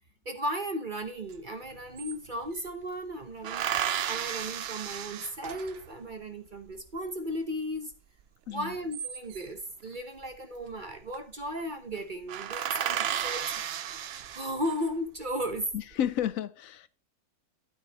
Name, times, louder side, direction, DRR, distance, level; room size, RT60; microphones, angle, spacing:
voice 1, 0.2-3.7 4.1-7.9 8.5-13.5 13.8-14.1 14.3-15.7, equal, 35° right, 1.1 m, -35 dB
sound 1, 1.3-1.4 1.6-2.7 3.4-6.0 8.6-9.6 10.8-11.2 11.5-11.6 11.9-12.0 12.3-14.8 15.4-16.1, right 9 dB, 60° right, 0.7 m, -33 dB
voice 2, 15.7-16.9, left 10 dB, 70° left, 1.0 m, -31 dB
12.0 x 8.7 x 3.0 m
omnidirectional pair, 1.6 m